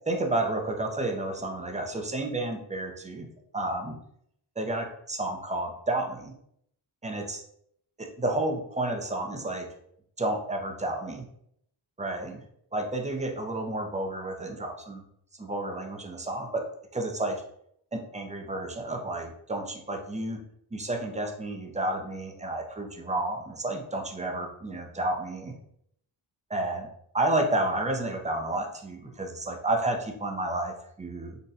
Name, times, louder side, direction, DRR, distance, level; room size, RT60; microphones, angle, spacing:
voice 1, 0.1-3.3 3.5-4.0 4.6-6.3 7.0-7.4 8.0-9.7 10.2-11.3 12.0-12.4 12.7-15.0 15.4-16.7 16.9-17.4 17.9-20.4 20.7-25.5 26.5-26.9 27.1-31.4, right 2 dB, 15° right, 3 dB, 0.4 m, -31 dB
3.9 x 2.2 x 2.6 m, 0.70 s
wide cardioid pair, 75°, 48 cm